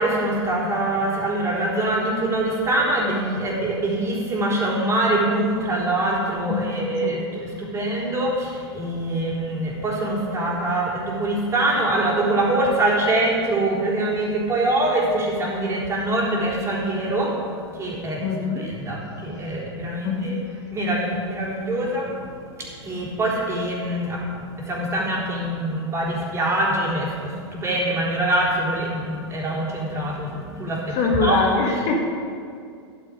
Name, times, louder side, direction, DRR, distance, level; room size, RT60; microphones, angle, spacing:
voice 1, 0.0-18.2 18.6-20.4 20.7-31.4, right 1 dB, 20° right, -4 dB, 4.0 m, -24 dB
voice 2, 6.5-7.2 18.2-18.7 20.0-20.4 30.9-32.1, left 4 dB, 45° left, 0 dB, 2.1 m, -23 dB
13.5 x 11.0 x 5.1 m, 2.3 s
hypercardioid pair, 115°, 14 cm